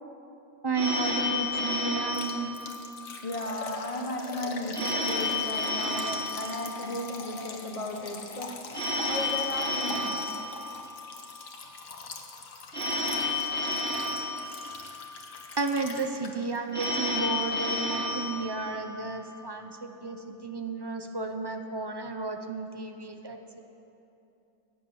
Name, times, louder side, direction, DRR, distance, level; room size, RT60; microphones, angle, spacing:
voice 1, 0.6-2.5 15.6-23.6, right 3 dB, 25° right, 5 dB, 0.5 m, -33 dB
Telephone, 0.7-3.2 4.7-7.2 8.7-11.2 12.7-15.2 16.7-19.2, left 2 dB, 45° right, 2.8 m, -31 dB
Liquid, 2.1-16.6 16.8-16.9 17.4-17.5, left 4 dB, 65° left, 1.5 m, -42 dB
voice 2, 3.2-8.6 9.0-10.1, left 1 dB, 25° left, 2 dB, 1.2 m, -35 dB
16.5 x 8.8 x 7.1 m, 2.8 s
omnidirectional pair, 1.5 m